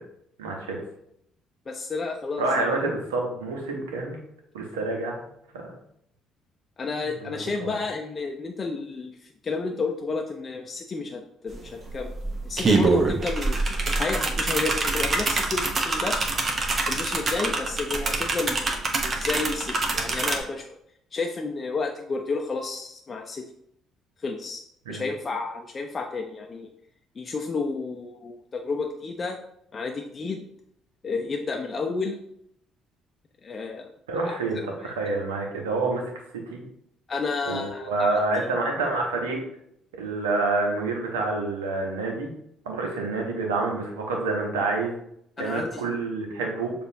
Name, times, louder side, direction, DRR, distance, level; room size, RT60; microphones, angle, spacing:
voice 1, 0.4-0.8 2.4-4.2 4.5-5.1 7.2-7.7 24.9-25.0 34.1-36.0 36.3-36.6 37.5-39.4 40.0-42.3 42.7-44.9 45.4-46.7, right 3 dB, 85° right, 1 dB, 0.8 m, -27 dB
voice 2, 1.7-2.7 6.8-12.1 12.4-13.6 14.0-16.2 16.9-20.8 21.1-23.4 24.2-24.6 24.9-26.7 27.2-29.4 29.7-30.5 31.0-32.2 33.4-33.9 34.3-34.4 34.8-34.9 37.1-38.2 45.4-45.8, left 4 dB, 35° left, 2 dB, 0.5 m, -31 dB
sound 1, 11.5-11.6 11.9-20.4, right 3 dB, 40° right, 0.8 m, -25 dB
6.6 x 2.5 x 2.7 m, 0.74 s
hypercardioid pair, 50°, 0 cm